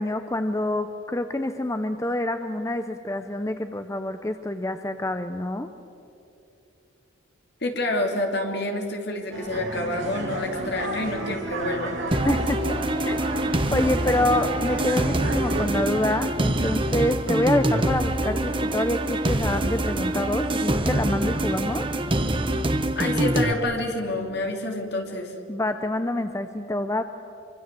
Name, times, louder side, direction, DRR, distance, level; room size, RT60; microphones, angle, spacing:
voice 1, 0.0-5.7 12.2-12.8 13.0-13.3 13.7-21.9 25.5-27.0, left 1 dB, 15° left, 8 dB, 0.6 m, -27 dB
voice 2, 7.6-12.0 22.9-25.3, left 2 dB, 50° left, 2 dB, 3.2 m, -28 dB
sound 1, 9.3-15.7, right 2 dB, 65° right, 4.0 m, -32 dB
sound 2, 12.1-23.5, right 1 dB, 25° right, 1.0 m, -25 dB
25.5 x 25.0 x 7.7 m, 2.9 s
head